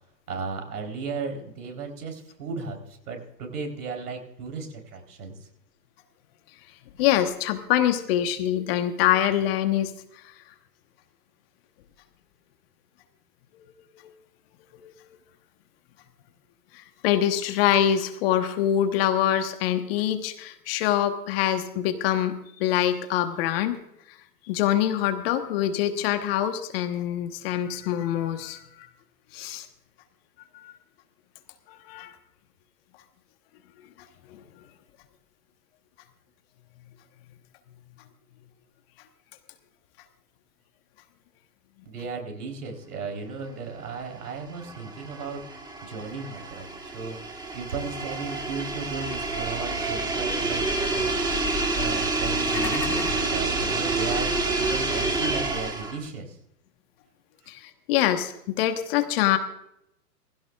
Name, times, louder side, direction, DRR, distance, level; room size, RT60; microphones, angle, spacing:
voice 1, 0.3-2.8 3.1-5.3 41.9-51.1 51.7-56.3, right 4 dB, 65° right, 4 dB, 3.9 m, -35 dB
voice 2, 7.0-9.9 14.0-14.1 14.8-14.9 16.7-23.8 24.5-28.9 29.3-29.7 30.5-30.7 31.8-32.1 34.3-34.4 57.5-59.4, left 11 dB, 35° left, 9 dB, 1.2 m, -25 dB
sound 1, 44.2-56.1, right 3 dB, 10° right, 1.5 m, -28 dB
sound 2, 52.2-53.3, left 6 dB, 85° left, 2.5 m, -34 dB
20.0 x 16.0 x 2.4 m, 0.77 s
hypercardioid pair, 130°, 49 cm